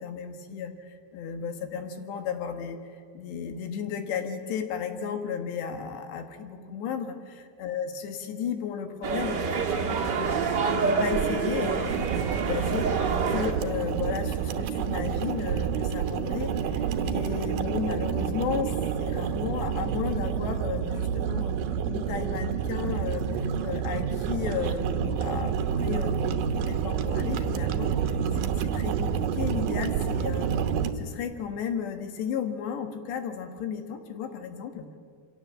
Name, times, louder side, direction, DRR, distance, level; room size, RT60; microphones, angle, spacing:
voice 1, 0.0-10.3 10.7-12.9 13.3-18.7 19.0-21.6 21.9-27.9 28.3-30.6 31.0-35.0, left 7 dB, 80° left, 7 dB, 3.8 m, -34 dB
sound 1, 9.0-13.5, right 5 dB, 40° right, 1.7 m, -27 dB
sound 2, 11.9-30.9, right 7 dB, 70° right, 2.3 m, -28 dB
28.0 x 25.0 x 7.6 m, 2.2 s
omnidirectional pair, 4.9 m